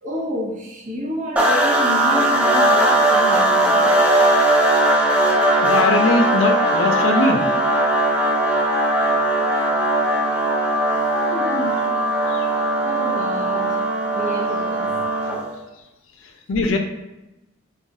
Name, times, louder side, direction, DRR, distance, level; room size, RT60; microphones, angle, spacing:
voice 1, 0.0-3.9 10.9-11.9 12.3-13.8 14.1-15.0, equal, 40° right, -3 dB, 0.7 m, -30 dB
sound 1, 1.4-15.6, right 1 dB, 5° right, 0.3 m, -19 dB
voice 2, 5.6-7.5 12.3-12.4 16.5-16.8, left 2 dB, 70° left, 4 dB, 0.4 m, -20 dB
2.5 x 2.3 x 3.9 m, 0.99 s
head